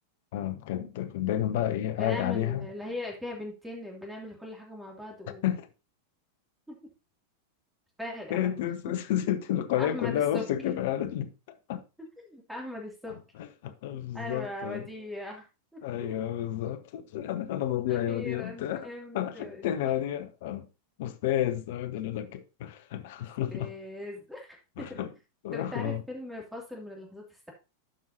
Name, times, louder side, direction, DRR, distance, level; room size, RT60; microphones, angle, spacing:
voice 1, 0.3-2.7 5.4-5.7 8.3-11.3 11.7-11.8 13.1-14.9 15.8-20.7 21.0-23.7 24.8-25.1 25.4-26.0, left 11 dB, 50° left, 0.7 m, -31 dB
voice 2, 2.0-5.4 6.7-6.8 8.0-8.6 9.8-10.4 12.0-13.2 14.1-15.5 15.7-15.8 17.9-19.7 23.5-25.0 25.5-27.5, left 1 dB, 5° right, 2.7 m, -40 dB
12.5 x 5.5 x 2.8 m
figure-of-eight pair, 90°, 0 cm